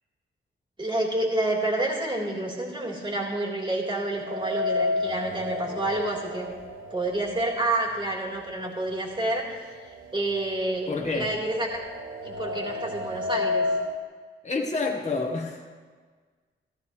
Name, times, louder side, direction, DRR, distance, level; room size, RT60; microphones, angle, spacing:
voice 1, 0.8-6.5 6.9-9.8 10.1-11.8 12.2-13.7, right 2 dB, 25° right, -3 dB, 3.5 m, -29 dB
sound 1, 4.2-8.3 8.6-8.7 9.7-9.8 10.2-14.0, left 2 dB, 80° right, 1.0 m, -31 dB
voice 2, 10.9-11.3 14.4-15.7, left 3 dB, 35° left, 1 dB, 1.3 m, -28 dB
14.5 x 14.0 x 3.2 m, 1.5 s
cardioid pair, 60°, 20 cm